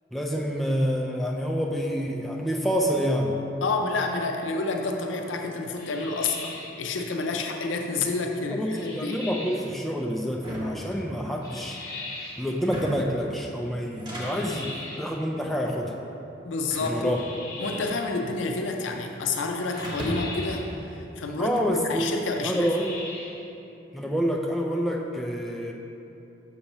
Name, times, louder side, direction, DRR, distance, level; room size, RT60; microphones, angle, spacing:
voice 1, 0.1-3.4 8.5-11.8 12.4-15.9 16.8-17.2 21.4-22.9 23.9-25.7, equal, ahead, -1 dB, 0.3 m, -27 dB
voice 2, 3.6-9.2 16.4-17.1 17.6-20.6 20.9-22.8, left 3 dB, 90° left, 3 dB, 0.5 m, -29 dB
sound 1, 5.8-6.8 8.7-9.7 11.4-12.5 14.1-15.1 17.0-18.1 19.7-20.7 22.3-23.4, left 2 dB, 20° left, 0.7 m, -40 dB
sound 2, 10.3-11.5 12.5-13.2 13.8-14.7 15.5-15.9 16.7-18.2 18.5-19.3 19.8-20.5, equal, 25° right, 0.8 m, -37 dB
6.6 x 3.0 x 5.3 m, 2.9 s
head